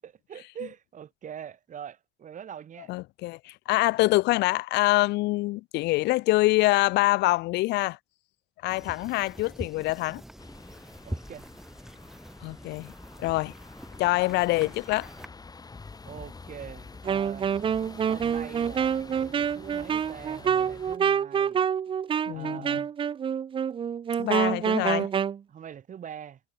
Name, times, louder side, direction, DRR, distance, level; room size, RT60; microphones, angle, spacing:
voice 1, 0.0-2.9 11.0-11.5 16.0-17.5 18.1-21.7 22.3-22.9 25.5-26.4, right 9 dB, 50° right, 6.7 m, -43 dB
voice 2, 2.9-8.0 8.6-10.2 12.4-12.9 13.2-13.5 14.0-15.1 22.3-22.7 24.2-25.1, left 20 dB, 85° left, 0.9 m, -25 dB
sound 1, 8.7-15.3, equal, ahead, 5.6 m, -43 dB
sound 2, 10.4-21.0, left 4 dB, 20° left, 7.8 m, -47 dB
Wind instrument woodwind instrument, 17.0-25.4, right 8 dB, 30° right, 0.4 m, -27 dB
cardioid pair, 110°, 17 cm